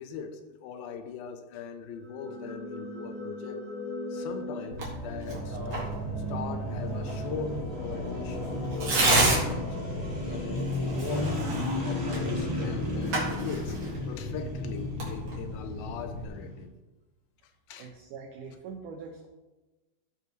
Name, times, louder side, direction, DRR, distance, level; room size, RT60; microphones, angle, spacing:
voice 1, 0.0-3.7 4.1-5.9 6.3-9.8 10.2-13.8 14.1-16.7 17.7-17.9, left 7 dB, 80° left, 8 dB, 2.4 m, -40 dB
sound 1, 1.9-13.8, equal, 20° right, 1.4 m, -40 dB
Tearing, 4.7-16.3, right 1 dB, 40° right, 2.1 m, -32 dB
sound 2, 5.3-16.6, left 2 dB, 60° right, 0.6 m, -35 dB
voice 2, 17.8-19.3, right 5 dB, 75° right, 2 dB, 2.0 m, -43 dB
15.0 x 5.3 x 3.1 m, 1.1 s
omnidirectional pair, 4.3 m